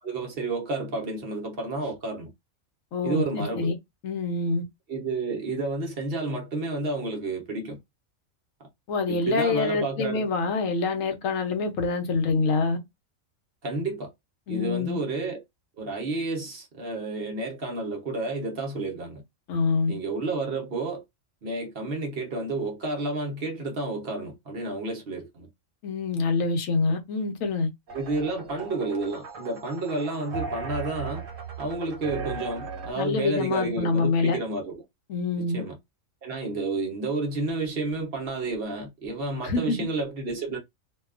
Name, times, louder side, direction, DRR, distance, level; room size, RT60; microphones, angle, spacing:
voice 1, 0.0-2.3 3.0-3.7 4.9-7.8 9.1-10.3 13.6-14.1 14.5-15.4 15.8-19.2 19.9-21.0 21.4-25.5 27.9-31.2 31.6-34.8 35.4-35.7 36.2-40.6, right 3 dB, 50° right, 0.9 m, -31 dB
voice 2, 2.9-3.7 4.0-4.6 8.9-12.8 14.5-15.0 19.5-20.0 25.8-27.7 33.0-34.4 35.1-35.6 39.4-39.8, left 4 dB, 80° left, 1.1 m, -26 dB
sound 1, 27.9-32.9, right 5 dB, 90° right, 1.2 m, -37 dB
2.7 x 2.3 x 2.4 m
omnidirectional pair, 1.4 m